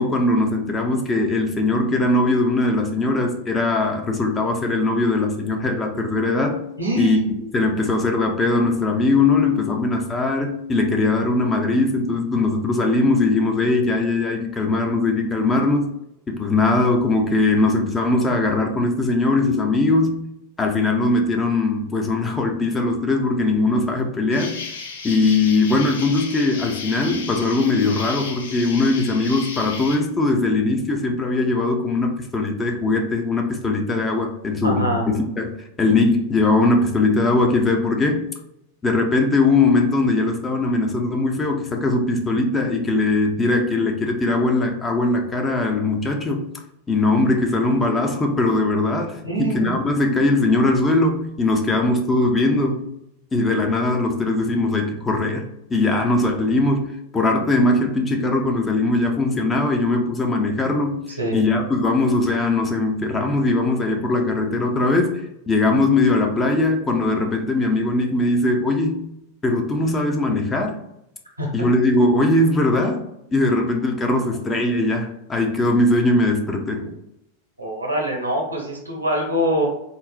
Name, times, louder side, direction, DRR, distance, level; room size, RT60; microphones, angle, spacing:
voice 1, 0.0-6.6 7.0-7.2 7.5-15.9 16.3-20.3 20.6-24.7 25.0-38.3 38.8-46.5 46.9-52.8 53.3-69.1 69.4-70.8 71.5-73.0 73.3-76.8, left 2 dB, 15° left, 2 dB, 0.5 m, -20 dB
voice 2, 6.8-7.2 34.6-35.1 49.2-49.8 61.2-61.4 71.4-71.7 77.6-79.6, right 1 dB, 85° right, -1 dB, 0.8 m, -24 dB
Insect, 24.3-30.0, left 4 dB, 60° left, 0.6 m, -34 dB
3.9 x 2.0 x 2.4 m, 0.83 s
figure-of-eight pair, 90°, 0 cm